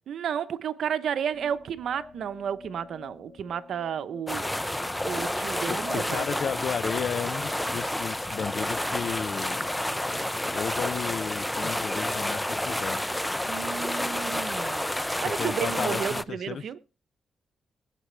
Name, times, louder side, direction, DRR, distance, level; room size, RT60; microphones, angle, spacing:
voice 1, 0.1-4.5 5.0-6.4 13.5-14.9 15.2-16.8, right 8 dB, 70° right, 0.9 m, -32 dB
sound 1, 1.3-13.4, left 5 dB, 35° left, 0.8 m, -51 dB
sound 2, 4.3-16.2, left 1 dB, 5° left, 0.5 m, -30 dB
voice 2, 5.7-13.0 15.2-16.8, left 7 dB, 60° left, 0.5 m, -34 dB
21.5 x 8.4 x 3.3 m
cardioid pair, 115°, 0 cm